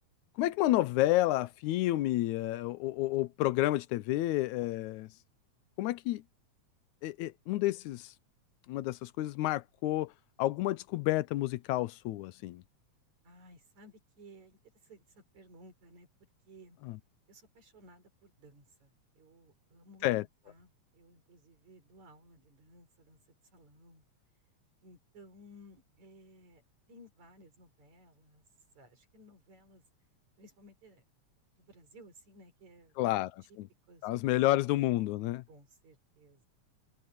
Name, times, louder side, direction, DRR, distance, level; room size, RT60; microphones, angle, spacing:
voice 1, 0.4-5.1 5.8-6.2 7.0-8.1 8.7-10.1 10.4-12.6 16.9-17.0 20.0-20.2 33.0-33.3 33.6-33.7 34.0-35.4, left 16 dB, 90° left, 2.1 m, -30 dB
voice 2, 13.2-16.1 16.5-16.8 17.3-24.0 24.8-26.6 26.9-28.5 28.7-29.8 30.4-31.0 31.6-33.1 33.9-35.0 35.5-36.5, equal, 70° right, 6.6 m, -58 dB
omnidirectional pair, 3.4 m